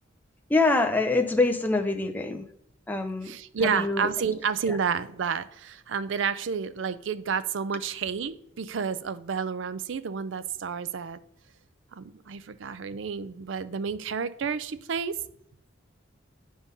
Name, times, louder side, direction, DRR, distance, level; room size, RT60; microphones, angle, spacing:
voice 1, 0.5-2.5 2.9-3.3 3.7-4.1 4.7-4.8, left 3 dB, 10° left, 4 dB, 0.5 m, -25 dB
voice 2, 3.2-11.2 11.9-15.2, right 6 dB, 65° right, 14 dB, 0.4 m, -30 dB
9.4 x 3.7 x 5.3 m, 0.71 s
head